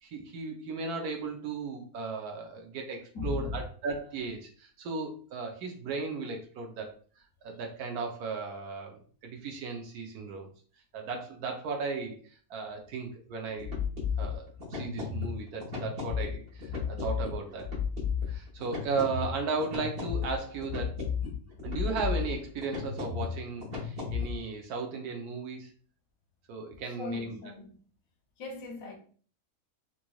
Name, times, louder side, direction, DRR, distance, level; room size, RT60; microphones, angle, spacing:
voice 1, 0.0-7.0 7.4-10.5 10.9-13.8 14.2-17.7 18.3-21.0 21.6-25.7 26.5-27.4, right 4 dB, 85° right, 1.3 m, -36 dB
voice 2, 3.1-3.6 16.9-17.0 26.8-27.8 28.4-29.0, left 3 dB, 70° left, 1.2 m, -37 dB
sound 1, 13.5-24.4, left 6 dB, 45° right, 1.1 m, -34 dB
3.9 x 3.0 x 2.3 m
omnidirectional pair, 1.6 m